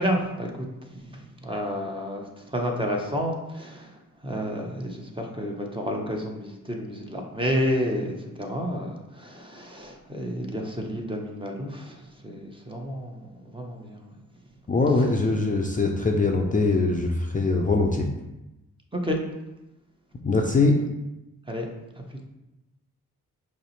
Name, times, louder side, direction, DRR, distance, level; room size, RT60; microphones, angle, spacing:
voice 1, 0.0-2.2 2.5-3.9 4.2-14.1 18.9-19.2 21.5-21.7 22.1-22.3, equal, 15° right, 1 dB, 0.9 m, -30 dB
voice 2, 14.7-18.1 20.2-20.8, left 3 dB, 25° left, 0 dB, 0.5 m, -22 dB
5.4 x 2.1 x 3.1 m, 0.96 s
supercardioid pair, 45°, 34 cm